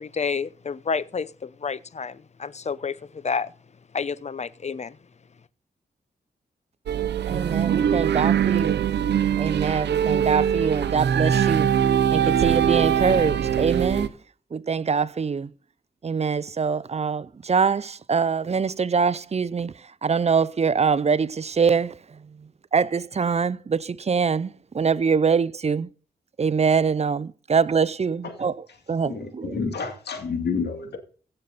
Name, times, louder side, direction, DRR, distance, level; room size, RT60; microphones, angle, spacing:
voice 1, 0.0-3.5 3.9-5.0, left 5 dB, 40° left, 0.7 m, -30 dB
sound 1, 6.9-14.1, right 9 dB, 85° right, 0.7 m, -22 dB
voice 2, 7.3-8.8 9.4-11.7 12.1-14.2 14.5-15.5 16.0-25.9 26.4-28.6 28.9-29.6, right 5 dB, 40° right, 0.6 m, -24 dB
voice 3, 29.1-31.0, left 5 dB, 75° left, 2.6 m, -29 dB
16.5 x 6.7 x 4.0 m
cardioid pair, 65°, 17 cm